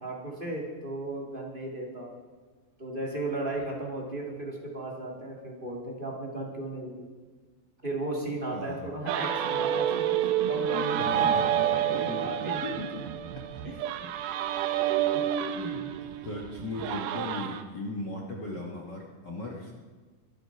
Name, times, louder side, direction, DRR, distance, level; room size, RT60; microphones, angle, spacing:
voice 1, 0.0-2.1 2.8-7.1 7.8-10.1 10.5-12.8 13.6-14.1 15.1-15.3, right 2 dB, 20° right, -2 dB, 1.3 m, -35 dB
voice 2, 8.5-8.9 11.0-11.6 11.9-13.0 13.5-13.6 15.5-15.8 16.2-19.7, left 2 dB, 60° left, -2 dB, 1.1 m, -38 dB
sound 1, 9.1-17.6, right 10 dB, 85° right, 2.7 m, -29 dB
23.5 x 8.0 x 5.8 m, 1.4 s
omnidirectional pair, 4.3 m